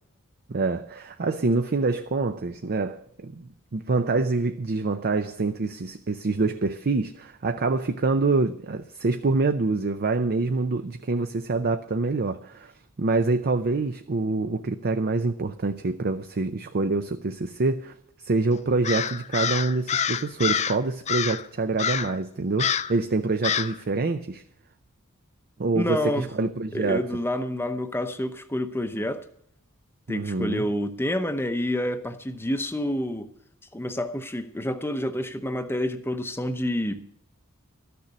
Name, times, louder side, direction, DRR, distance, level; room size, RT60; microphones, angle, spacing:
voice 1, 0.5-12.7 13.0-17.9 18.2-24.4 25.6-27.1 30.1-30.6, right 3 dB, 45° right, 0.6 m, -26 dB
Crow, 18.8-20.8 21.1-21.5 21.8-22.2 22.6-23.0 23.4-23.8, left 7 dB, 30° left, 0.4 m, -27 dB
voice 2, 25.7-26.3 26.7-29.2 30.1-33.3 33.7-37.0, left 1 dB, 10° left, 0.8 m, -28 dB
13.0 x 6.9 x 10.0 m
head